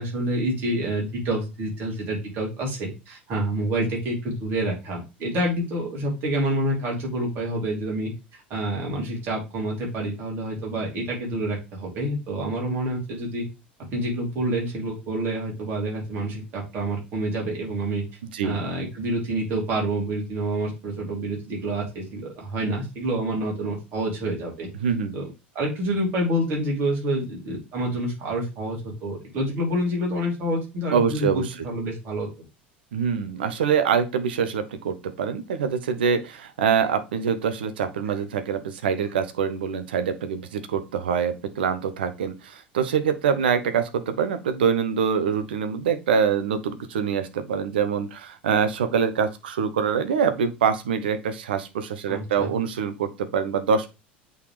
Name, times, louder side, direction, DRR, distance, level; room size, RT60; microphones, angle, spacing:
voice 1, 0.0-13.5 13.9-18.0 18.4-24.7 25.1-25.3 25.5-32.3 52.1-52.6, right 1 dB, 40° right, -1 dB, 3.1 m, -28 dB
voice 2, 24.8-25.1 30.9-31.5 32.9-53.9, right 7 dB, 65° right, 10 dB, 0.8 m, -25 dB
8.3 x 3.9 x 3.3 m, 0.27 s
figure-of-eight pair, 75°, 6 cm